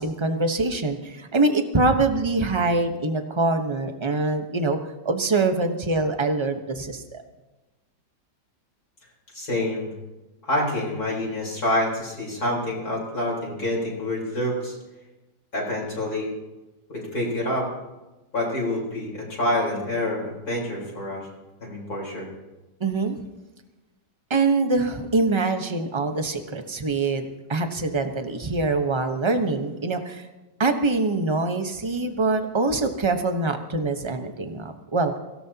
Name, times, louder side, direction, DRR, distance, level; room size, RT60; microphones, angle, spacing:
voice 1, 0.0-4.8 5.0-7.2 22.8-23.2 24.3-30.2 30.6-35.1, right 3 dB, 20° right, 6 dB, 0.9 m, -24 dB
voice 2, 9.3-9.9 10.4-14.8 15.5-16.3 16.9-17.7 18.3-21.3 21.6-22.3, left 1 dB, 60° left, -4 dB, 4.6 m, -27 dB
24.0 x 17.0 x 2.9 m, 1.1 s
omnidirectional pair, 1.9 m